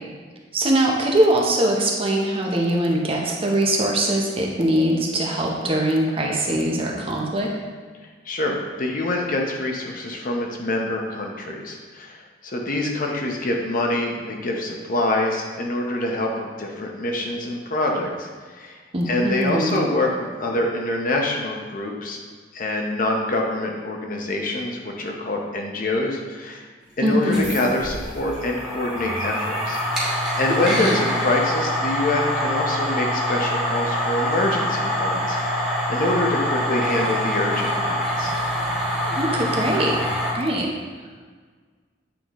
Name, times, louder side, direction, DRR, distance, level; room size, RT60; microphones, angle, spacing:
voice 1, 0.5-7.5 18.9-19.8 27.0-27.4 30.7-31.0 39.1-40.0 40.3-40.7, right 1 dB, 30° right, -1 dB, 0.8 m, -22 dB
voice 2, 8.2-18.8 19.1-20.1 20.4-22.2 22.5-26.6 27.0-38.3, left 2 dB, 50° left, 1 dB, 0.8 m, -25 dB
sound 1, 27.2-40.3, equal, 5° right, 1.2 m, -25 dB
8.5 x 3.8 x 3.0 m, 1.5 s
head